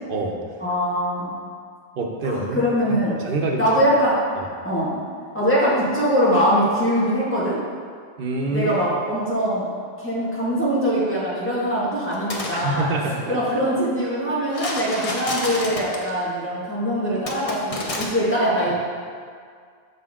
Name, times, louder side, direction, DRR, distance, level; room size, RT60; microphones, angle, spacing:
voice 1, 0.6-1.3 2.2-3.1 3.6-4.2 4.6-5.0 5.3-7.6 8.5-9.7 10.0-12.9 13.3-18.7, equal, 10° left, -9 dB, 1.8 m, -22 dB
voice 2, 2.0-2.6 2.9-3.6 4.4-4.5 8.2-8.7 12.5-13.6, right 2 dB, 60° right, 0 dB, 1.0 m, -26 dB
sound 1, 12.1-12.6 14.5-16.1 17.3-18.1, left 2 dB, 35° left, 0.8 m, -29 dB
6.8 x 6.0 x 3.7 m, 2.1 s
omnidirectional pair, 1.1 m